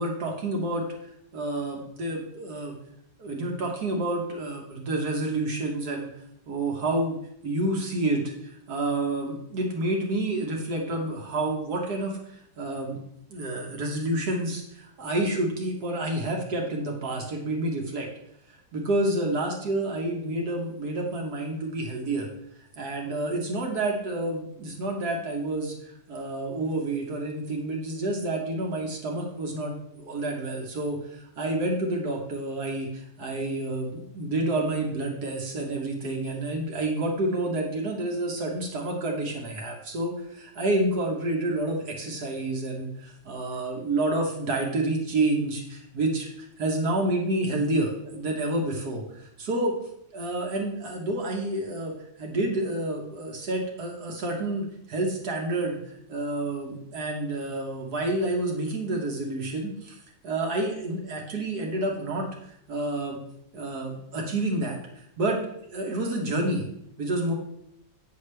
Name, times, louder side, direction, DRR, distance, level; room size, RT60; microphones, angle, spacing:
voice 1, 0.0-2.8 3.2-6.1 6.5-7.2 7.4-13.0 13.3-18.1 18.5-22.3 22.8-49.7 50.1-63.2 63.5-64.8 65.2-65.4 65.7-66.7 67.0-67.3, right 2 dB, 60° right, 0 dB, 1.5 m, -29 dB
7.8 x 6.4 x 3.2 m, 0.73 s
omnidirectional pair, 2.0 m